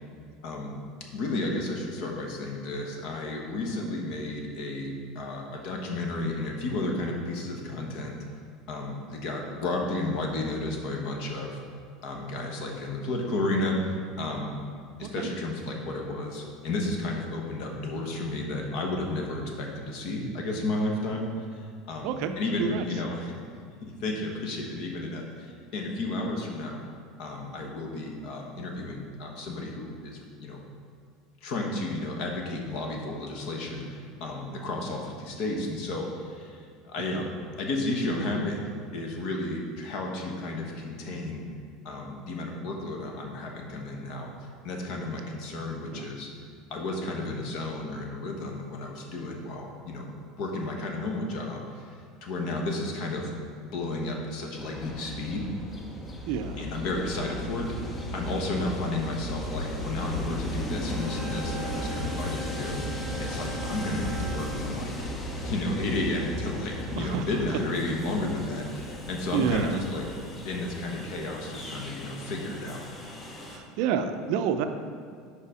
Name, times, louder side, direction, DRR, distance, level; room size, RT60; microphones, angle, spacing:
voice 1, 0.4-0.7 1.1-8.1 8.7-11.6 12.0-14.5 15.0-23.4 23.8-26.8 27.2-30.6 31.4-38.7 38.9-41.4 41.8-46.3 46.7-50.1 50.4-53.3 53.6-55.5 56.6-64.9 65.4-70.1 70.4-72.9, left 2 dB, 55° left, 1 dB, 1.0 m, -32 dB
Train, 54.6-73.6, equal, 20° left, 0.7 m, -36 dB
voice 2, 56.3-56.6 67.0-67.2 69.3-69.7 73.5-74.6, right 7 dB, 60° right, 7 dB, 0.4 m, -28 dB
Wind instrument woodwind instrument, 60.8-64.8, right 1 dB, 20° right, 0.8 m, -39 dB
5.5 x 4.9 x 4.9 m, 2.1 s
cardioid pair, 155°, 0 cm